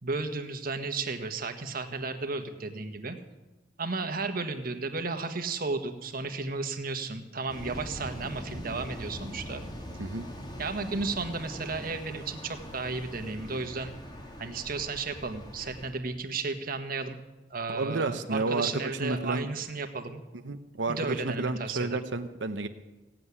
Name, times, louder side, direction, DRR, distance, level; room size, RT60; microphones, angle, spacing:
voice 1, 0.0-3.2 3.8-9.6 10.6-13.9 14.4-17.2 17.5-20.2 20.9-22.0, right 3 dB, 55° right, 7 dB, 1.4 m, -33 dB
sound 1, 7.5-15.9, equal, 25° left, 2.1 m, -42 dB
voice 2, 17.7-19.5 20.4-22.7, right 3 dB, 80° right, 8 dB, 0.9 m, -31 dB
17.0 x 7.7 x 9.8 m, 1.1 s
head